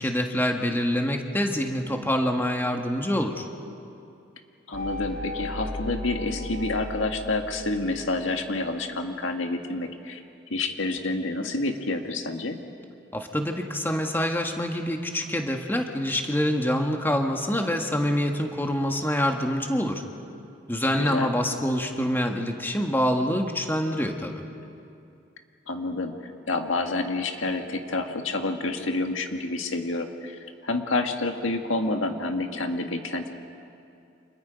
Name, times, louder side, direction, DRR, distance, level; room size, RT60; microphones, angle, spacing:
voice 1, 0.0-3.5 13.1-20.0 20.7-24.4, equal, 10° left, 3 dB, 1.5 m, -26 dB
voice 2, 4.7-10.2 10.5-12.6 21.0-21.3 25.7-33.3, left 2 dB, 85° left, 5 dB, 1.8 m, -28 dB
sound 1, 4.7-8.5, left 1 dB, 50° left, 3.9 m, -35 dB
29.5 x 27.0 x 5.2 m, 2.5 s
head